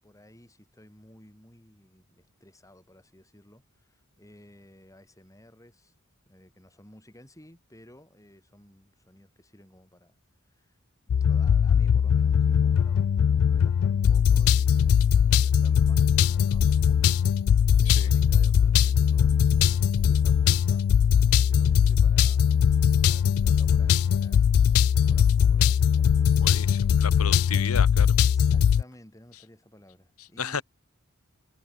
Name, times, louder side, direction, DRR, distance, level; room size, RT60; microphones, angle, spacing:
voice 1, 0.0-5.9 6.3-10.2 10.4-10.8 11.3-17.5 17.8-20.9 21.5-26.9 28.1-30.6, left 1 dB, 15° left, 7.1 m, -54 dB
sound 1, 11.1-28.8, left 8 dB, 70° left, 0.3 m, -21 dB
voice 2, 26.4-28.1 30.2-30.6, left 6 dB, 85° left, 1.4 m, -33 dB
head